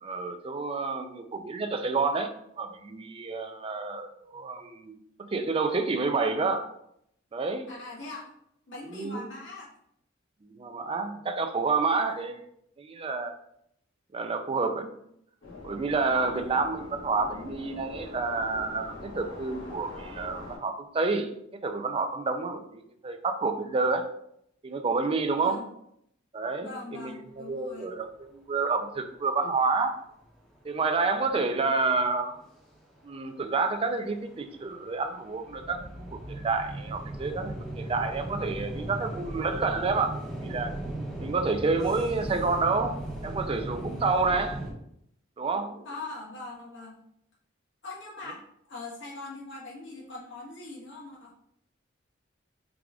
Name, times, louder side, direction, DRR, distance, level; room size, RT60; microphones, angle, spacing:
voice 1, 0.0-6.7 7.3-7.7 8.9-9.3 10.5-12.4 12.8-13.3 14.1-14.9 15.6-24.1 24.6-25.6 26.3-27.1 27.4-30.0 30.6-32.4 33.0-40.7 41.2-43.0 43.2-44.6 45.4-45.9, right 4 dB, 30° right, 7 dB, 0.4 m, -29 dB
voice 2, 7.7-8.3 8.7-9.7 11.9-12.2 16.3-16.5 25.3-25.7 26.6-27.9 45.8-47.0 47.8-51.3, left 2 dB, 65° left, -4 dB, 1.4 m, -42 dB
sound 1, 15.4-20.6, left 3 dB, 80° left, 1.5 m, -43 dB
sound 2, 30.3-30.4 30.7-32.8 33.3-44.7, right 1 dB, ahead, 1.0 m, -38 dB
4.7 x 2.4 x 3.6 m, 0.73 s
head